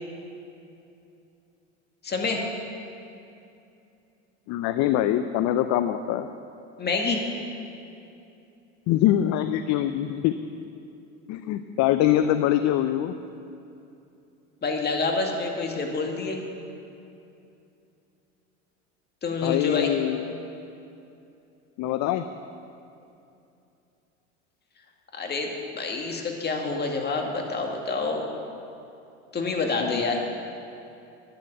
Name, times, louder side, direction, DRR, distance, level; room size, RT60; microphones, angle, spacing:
voice 1, 2.0-2.4 6.8-7.2 14.6-16.4 19.2-19.9 25.1-28.3 29.3-30.2, left 3 dB, 25° left, 2 dB, 2.1 m, -27 dB
voice 2, 4.5-6.3 8.9-10.3 11.3-13.2 19.4-20.3 21.8-22.3 29.8-30.3, left 12 dB, 50° left, 10 dB, 0.6 m, -24 dB
11.5 x 9.9 x 7.0 m, 2.7 s
hypercardioid pair, 95°, 37 cm